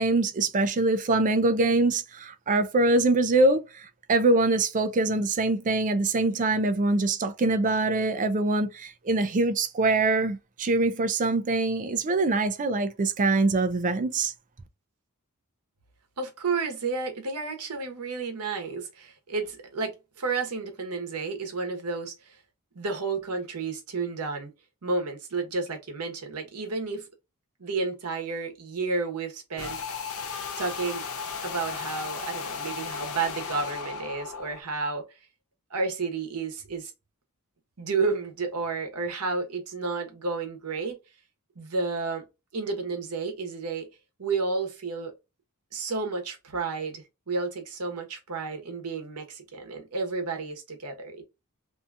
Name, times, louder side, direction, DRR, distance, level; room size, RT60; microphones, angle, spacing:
voice 1, 0.0-14.3, right 2 dB, 35° right, 0.4 m, -24 dB
voice 2, 16.2-22.4 22.7-24.5 24.8-27.1 27.6-30.1 30.6-31.0 31.4-35.0 35.7-36.9 37.8-41.0 41.6-42.2 42.5-43.9 44.2-45.1 45.7-51.2, right 4 dB, 85° right, 0.9 m, -31 dB
sound 1, 29.6-34.6, left 6 dB, 70° left, 0.6 m, -35 dB
2.7 x 2.3 x 2.5 m
head